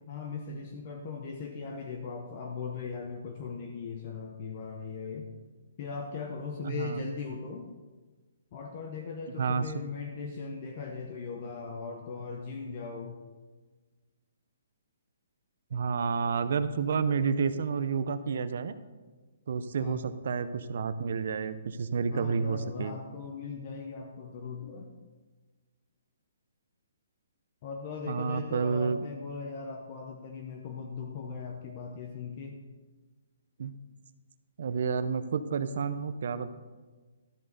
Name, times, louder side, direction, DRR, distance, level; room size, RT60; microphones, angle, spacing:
voice 1, 0.1-5.3 5.8-7.7 8.5-13.2 19.8-20.1 22.1-24.9 27.6-32.6, left 5 dB, 30° left, 3 dB, 0.7 m, -39 dB
voice 2, 6.6-7.0 9.4-9.7 15.7-18.7 19.5-22.9 28.1-29.0 33.6-33.7 34.6-36.5, right 5 dB, 50° right, 12 dB, 0.6 m, -30 dB
12.5 x 7.6 x 3.9 m, 1.3 s
hypercardioid pair, 175°, 0 cm